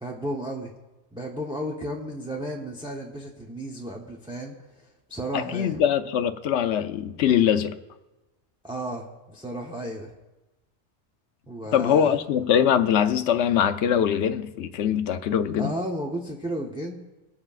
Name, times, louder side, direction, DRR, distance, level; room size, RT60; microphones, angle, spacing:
voice 1, 0.0-0.7 1.1-4.5 5.1-5.8 8.6-10.1 11.5-12.2 15.6-17.0, right 1 dB, 5° right, 0.7 m, -33 dB
voice 2, 5.3-7.8 11.7-15.7, left 9 dB, 75° left, 0.9 m, -22 dB
21.5 x 7.8 x 2.4 m
omnidirectional pair, 1.2 m